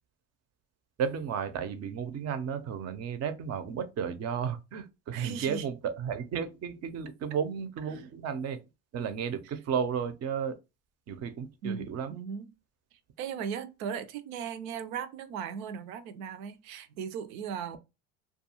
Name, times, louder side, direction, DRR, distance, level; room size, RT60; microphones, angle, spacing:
voice 1, 1.0-8.6 8.9-10.5 11.1-12.1, right 7 dB, 40° right, 0.6 m, -33 dB
voice 2, 5.1-5.7 7.9-8.0 11.6-12.5 12.9-17.8, right 7 dB, 80° right, 0.6 m, -37 dB
2.3 x 2.3 x 2.9 m
supercardioid pair, 90°, 40 cm